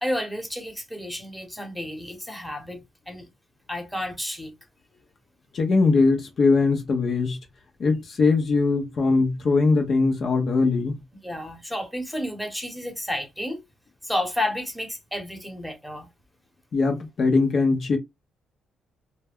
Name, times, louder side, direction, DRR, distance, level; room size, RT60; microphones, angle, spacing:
voice 1, 0.0-2.8 3.1-3.3 3.7-4.5 11.2-13.6 14.0-16.1, left 1 dB, ahead, 1.0 m, -31 dB
voice 2, 5.5-7.4 7.8-10.9 16.7-18.0, left 3 dB, 50° left, 0.7 m, -21 dB
2.2 x 2.0 x 3.5 m
cardioid pair, 90°, 0 cm